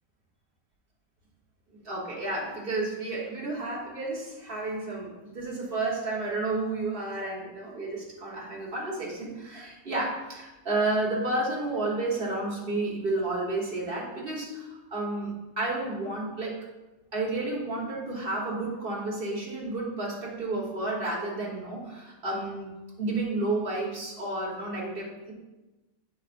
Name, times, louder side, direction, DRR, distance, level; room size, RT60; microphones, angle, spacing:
voice 1, 1.7-16.6 17.1-25.3, right 2 dB, 40° right, -3 dB, 1.4 m, -31 dB
8.4 x 5.3 x 2.5 m, 1.1 s
omnidirectional pair, 1.5 m